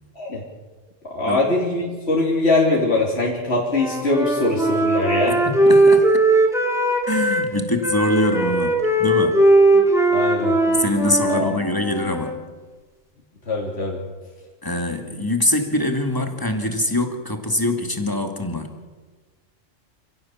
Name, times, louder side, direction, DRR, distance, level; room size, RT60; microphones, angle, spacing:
voice 1, 1.1-5.4 10.1-10.6 11.3-11.5 13.5-14.0, left 2 dB, 55° left, -4 dB, 3.6 m, -22 dB
Wind instrument woodwind instrument, 3.7-7.5 7.8-12.3, right 1 dB, ahead, 2.6 m, -18 dB
voice 2, 5.3-6.2 7.1-9.5 9.7-9.8 10.7-12.4 14.6-18.7, left 1 dB, 15° left, 5 dB, 2.3 m, -24 dB
28.5 x 16.5 x 7.4 m, 1.4 s
omnidirectional pair, 1.3 m